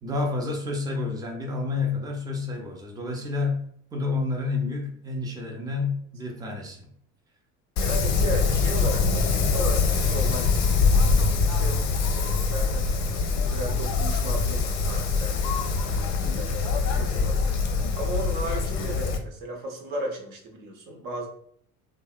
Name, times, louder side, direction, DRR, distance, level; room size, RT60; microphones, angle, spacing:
voice 1, 0.0-3.6 3.9-6.8, left 3 dB, 10° right, 1 dB, 0.5 m, -29 dB
Wind, 7.8-19.2, left 4 dB, 45° left, 0.5 m, -24 dB
voice 2, 7.8-11.8 12.0-17.4 17.9-21.3, right 1 dB, 55° right, 1 dB, 0.8 m, -36 dB
2.6 x 2.1 x 2.3 m, 0.62 s
hypercardioid pair, 65°, 41 cm